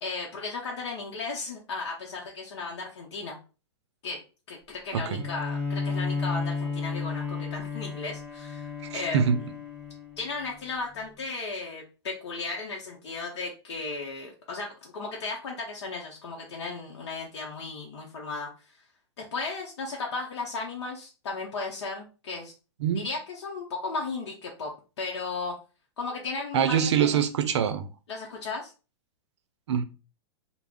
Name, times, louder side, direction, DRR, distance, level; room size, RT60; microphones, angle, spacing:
voice 1, 0.0-3.4 4.0-4.2 4.5-9.3 10.2-18.8 19.2-22.5 22.9-25.6 26.0-27.2 28.1-28.7, left 3 dB, 70° left, 0.6 m, -35 dB
voice 2, 4.9-5.2 8.9-9.4 22.8-23.1 26.5-27.9 29.7-29.8, right 8 dB, 75° right, 0.5 m, -24 dB
Bowed string instrument, 5.1-10.6, left 4 dB, ahead, 0.8 m, -33 dB
2.3 x 2.0 x 3.4 m
hypercardioid pair, 130°, 15 cm